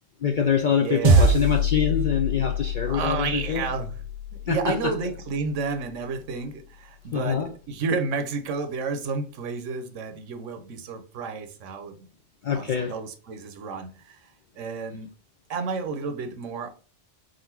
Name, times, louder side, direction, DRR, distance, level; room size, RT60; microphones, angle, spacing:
voice 1, 0.2-3.6 4.5-4.9 7.1-7.5 12.4-13.0, left 7 dB, 60° left, 0.5 m, -25 dB
voice 2, 0.7-1.3 2.9-3.9 4.3-12.1 12.5-14.3 14.6-15.1 15.5-16.7, right 4 dB, 80° right, 1.0 m, -31 dB
sound 1, 1.0-5.6, equal, 50° right, 0.6 m, -24 dB
3.8 x 2.5 x 4.3 m
omnidirectional pair, 1.3 m